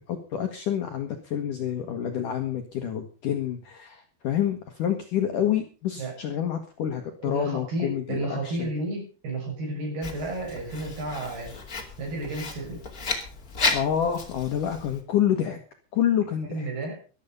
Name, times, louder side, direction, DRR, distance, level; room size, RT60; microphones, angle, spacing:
voice 1, 0.0-8.7 13.7-15.6 15.9-16.7, left 9 dB, 60° left, 5 dB, 2.3 m, -28 dB
voice 2, 7.2-11.5 12.0-12.8 16.4-17.0, right 1 dB, 55° right, 1 dB, 8.6 m, -32 dB
Writing, 10.0-15.0, left 3 dB, 30° left, 2.0 m, -33 dB
14.0 x 12.5 x 5.4 m, 0.36 s
omnidirectional pair, 5.3 m